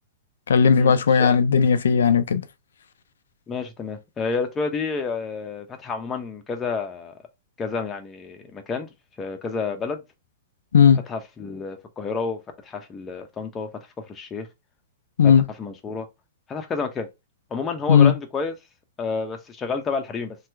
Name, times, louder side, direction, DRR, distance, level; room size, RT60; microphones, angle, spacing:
voice 1, 0.5-2.4 10.7-11.0 15.2-15.4 17.9-18.1, left 6 dB, 90° left, 0.3 m, -16 dB
voice 2, 3.5-7.1 7.6-8.9 9.2-10.0 11.1-13.7 14.0-14.5 15.2-15.3 15.6-16.1 16.5-17.1 17.5-18.5 19.0-20.4, left 4 dB, 20° left, 0.6 m, -30 dB
2.9 x 2.3 x 3.3 m
hypercardioid pair, 135°, 0 cm